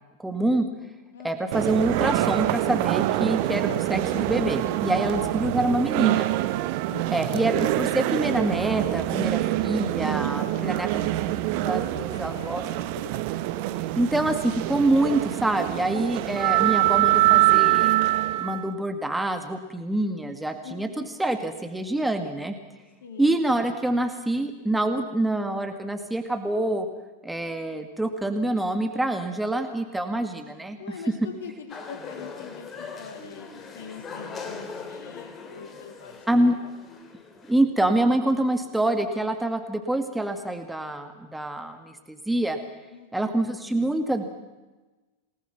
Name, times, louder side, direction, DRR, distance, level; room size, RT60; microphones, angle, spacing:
voice 1, 0.2-0.7 1.2-6.3 7.1-10.9 11.6-12.6 14.0-18.0 18.4-22.6 23.2-26.9 27.2-30.8 36.3-36.6 37.5-42.6 43.1-44.2, right 1 dB, 5° right, 6 dB, 2.0 m, -26 dB
voice 2, 1.1-1.6 5.0-6.3 6.9-7.4 10.1-11.3 11.7-13.2 16.5-16.8 20.6-21.1 23.0-23.4 30.8-36.2 36.5-36.7 42.9-43.4, left 5 dB, 60° left, 6 dB, 3.2 m, -44 dB
sound 1, 1.5-18.7, right 16 dB, 45° right, 1.2 m, -25 dB
sound 2, 31.7-37.5, left 5 dB, 25° left, 2.9 m, -40 dB
28.5 x 19.5 x 6.0 m, 1.2 s
figure-of-eight pair, 90°, 0 cm